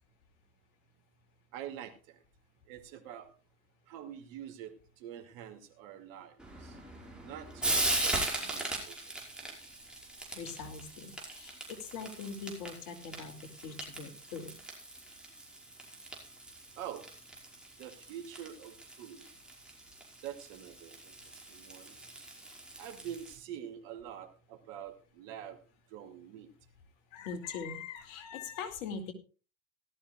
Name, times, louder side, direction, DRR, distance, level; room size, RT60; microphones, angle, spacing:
voice 1, 1.5-2.2 2.7-3.3 3.9-6.8 7.2-9.6 16.7-17.1 17.8-19.3 20.2-21.1 21.5-22.0 22.8-25.6 25.9-26.5, right 10 dB, 60° right, 7 dB, 2.5 m, -46 dB
Frying (food), 6.4-23.4, right 2 dB, ahead, 5.4 m, -39 dB
voice 2, 10.3-13.3 13.6-14.5 27.1-29.1, left 5 dB, 60° left, 7 dB, 2.6 m, -42 dB
18.0 x 13.0 x 2.4 m, 0.34 s
hypercardioid pair, 80°, 43 cm